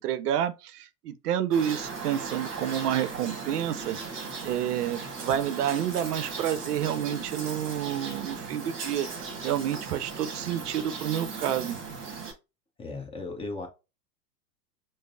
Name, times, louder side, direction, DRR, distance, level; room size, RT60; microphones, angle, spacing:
voice 1, 0.0-4.0 4.4-11.8, right 10 dB, 70° right, 0.6 m, -29 dB
sound 1, 1.5-12.3, right 4 dB, 25° right, 1.1 m, -37 dB
voice 2, 12.8-13.7, left 3 dB, 10° left, 0.7 m, -36 dB
5.0 x 2.0 x 2.5 m
hypercardioid pair, 100°, 49 cm